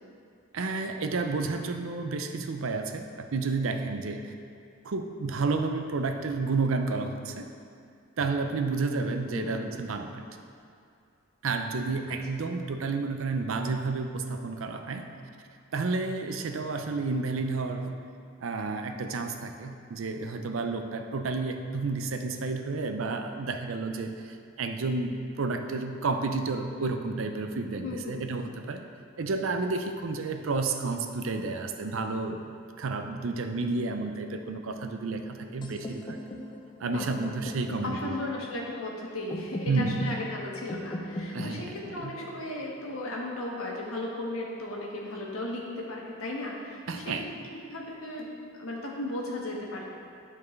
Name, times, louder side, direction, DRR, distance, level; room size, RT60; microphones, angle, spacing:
voice 1, 0.5-4.3 4.8-7.5 8.2-10.2 11.4-15.1 15.7-17.9 18.4-28.8 29.2-36.2 36.8-38.1 39.7-40.0 41.3-42.2 46.9-47.3, right 3 dB, 70° right, 6 dB, 0.5 m, -31 dB
voice 2, 9.3-9.6 27.8-28.2 36.8-37.1 37.8-49.8, left 1 dB, 85° left, -2 dB, 1.3 m, -36 dB
sound 1, 35.6-43.5, left 1 dB, 20° left, 0.5 m, -40 dB
11.0 x 4.5 x 3.2 m, 2.4 s
head